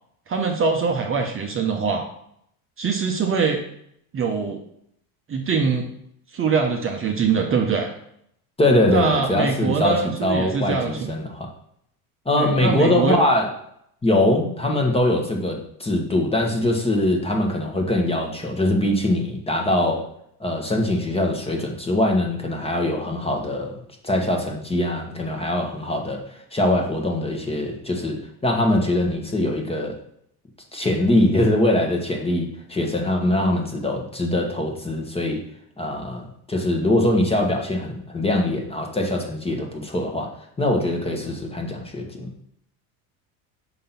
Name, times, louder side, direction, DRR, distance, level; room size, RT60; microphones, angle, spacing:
voice 1, 0.3-2.1 2.8-3.6 4.1-4.6 5.3-5.8 6.3-7.9 8.9-11.1 12.4-13.2, right 5 dB, 30° right, 2 dB, 0.9 m, -23 dB
voice 2, 8.6-11.5 12.2-13.5 14.0-20.0 20.4-28.2 28.4-30.0 30.7-35.4 35.8-40.3 40.6-42.3, left 1 dB, 15° left, 2 dB, 1.1 m, -22 dB
5.7 x 3.7 x 5.7 m, 0.71 s
supercardioid pair, 110°, 45 cm